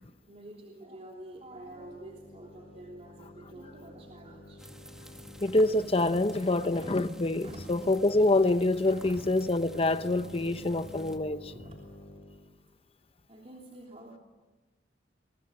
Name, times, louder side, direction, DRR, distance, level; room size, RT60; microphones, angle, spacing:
voice 1, 0.3-4.6 5.0-5.1 5.5-5.6 6.1-8.2 8.8-9.2 10.4-10.5 11.5-11.8 13.3-14.2, right 1 dB, 35° right, 3.3 m, -48 dB
sound 1, 1.3-12.5, equal, 70° left, 5.9 m, -50 dB
sound 2, 4.6-11.2, equal, 5° right, 1.9 m, -49 dB
voice 2, 5.4-11.5, left 2 dB, 35° left, 1.0 m, -26 dB
27.5 x 22.5 x 8.5 m
head